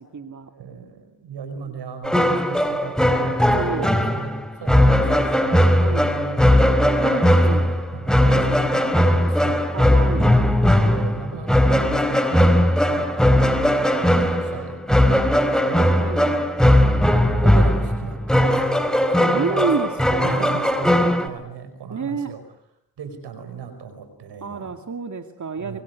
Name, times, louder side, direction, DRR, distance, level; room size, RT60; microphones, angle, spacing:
voice 1, 0.0-0.5 3.5-3.9 5.8-6.1 6.9-7.7 9.7-10.4 16.0-16.6 19.2-20.8 21.9-22.3 24.4-25.8, right 5 dB, 45° right, 6 dB, 2.4 m, -29 dB
voice 2, 0.5-9.7 10.7-13.3 13.6-16.0 17.4-18.9 19.2-19.7 20.2-22.4 23.0-24.8 25.6-25.8, right 6 dB, 85° right, 9 dB, 5.2 m, -36 dB
sound 1, 2.0-21.3, equal, ahead, 4.1 m, -18 dB
24.0 x 23.5 x 9.5 m, 0.80 s
supercardioid pair, 40°, 40 cm